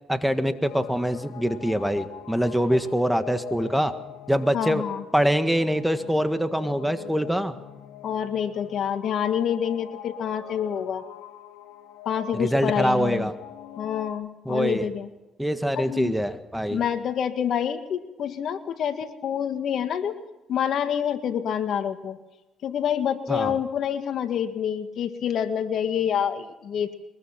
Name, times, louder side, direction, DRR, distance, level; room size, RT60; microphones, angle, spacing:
voice 1, 0.1-3.9 4.3-4.8 5.1-7.5 12.3-13.3 14.4-14.9 15.4-16.8 23.3-23.6, equal, 5° right, 9 dB, 1.7 m, -24 dB
sound 1, 0.6-14.1, left 10 dB, 90° left, 2.3 m, -43 dB
voice 2, 4.5-5.0 8.0-11.0 12.0-13.3 13.8-15.1 15.7-16.1 16.7-20.2 20.5-22.2 22.6-26.9, left 8 dB, 65° left, 9 dB, 1.8 m, -27 dB
23.0 x 21.5 x 5.9 m, 1.1 s
cardioid pair, 85°, 0 cm